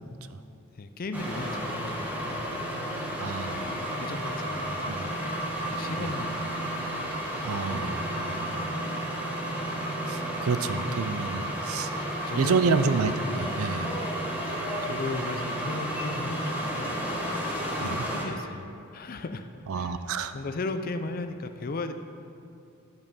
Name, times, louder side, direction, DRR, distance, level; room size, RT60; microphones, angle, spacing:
voice 1, 0.7-2.4 3.4-3.7 4.0-5.1 5.5-6.6 7.5-8.8 11.4-11.5 12.2-12.7 13.7-14.2 14.4-17.0 17.8-19.5 19.7-20.0 20.3-21.9, left 3 dB, 45° left, 9 dB, 0.4 m, -37 dB
sound 1, 1.1-18.2, right 1 dB, 10° right, 1.1 m, -32 dB
voice 2, 3.2-3.8 4.9-5.1 6.0-6.1 7.4-8.0 10.1-11.9 12.4-13.9 17.8-18.0 19.7-20.3, right 4 dB, 85° right, 11 dB, 0.5 m, -28 dB
11.5 x 5.4 x 5.3 m, 2.6 s
head